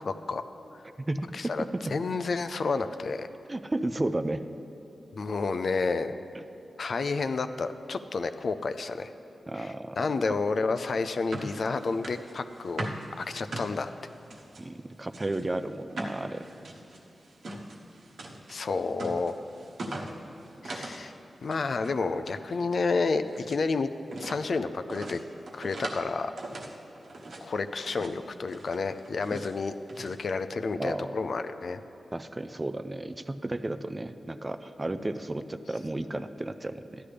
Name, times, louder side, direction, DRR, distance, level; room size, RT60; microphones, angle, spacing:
voice 1, 0.1-0.4 1.3-3.3 5.1-6.1 6.8-9.1 9.5-12.9 13.2-13.9 18.5-19.4 20.6-21.1 21.4-23.9 24.2-25.2 25.5-26.3 27.4-31.8, left 4 dB, 55° left, 10 dB, 0.4 m, -30 dB
voice 2, 1.0-2.0 3.5-4.4 6.4-6.5 9.5-10.0 10.3-10.4 14.6-16.4 29.3-29.4 30.8-31.2 32.1-37.1, right 2 dB, 20° right, 10 dB, 0.3 m, -33 dB
sound 1, 11.1-14.6 15.1-21.1 21.3-21.9 22.2-23.6 24.1-24.4 24.9-26.1 26.4-27.5 27.8-28.2 28.5-29.5 29.9-30.2, right 1 dB, 75° right, 1.1 m, -41 dB
14.0 x 11.0 x 3.4 m, 2.8 s
wide cardioid pair, 130°, 0 cm